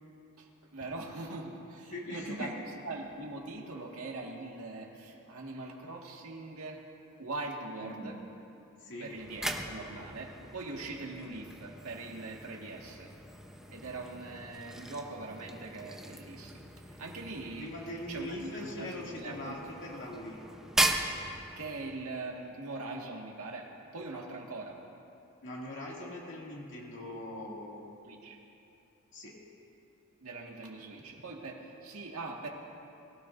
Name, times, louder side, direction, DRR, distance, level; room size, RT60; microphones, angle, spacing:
voice 1, 0.4-2.5 2.8-6.8 7.2-8.2 9.0-13.1 13.7-17.7 18.1-19.6 21.6-24.8 28.0-28.4 30.2-32.5, right 3 dB, 90° right, -1 dB, 1.8 m, -42 dB
voice 2, 1.9-2.5 7.8-8.2 8.8-9.1 17.6-20.4 25.4-27.8 29.1-29.4, left 1 dB, 60° left, -4 dB, 2.4 m, -41 dB
sound 1, 9.0-22.0, right 1 dB, ahead, 0.8 m, -38 dB
22.5 x 15.5 x 2.6 m, 2.8 s
head